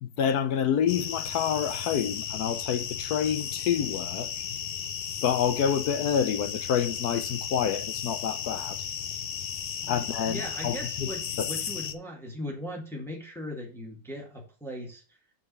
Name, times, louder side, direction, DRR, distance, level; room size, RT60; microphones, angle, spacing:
voice 1, 0.0-4.3 5.2-8.8 9.9-11.1 11.4-11.5, left 8 dB, 70° left, 1.1 m, -28 dB
sound 1, 0.9-11.9, left 8 dB, 90° left, 0.5 m, -34 dB
voice 2, 9.8-15.0, equal, ahead, 1.8 m, -39 dB
8.3 x 4.2 x 6.8 m
omnidirectional pair, 2.0 m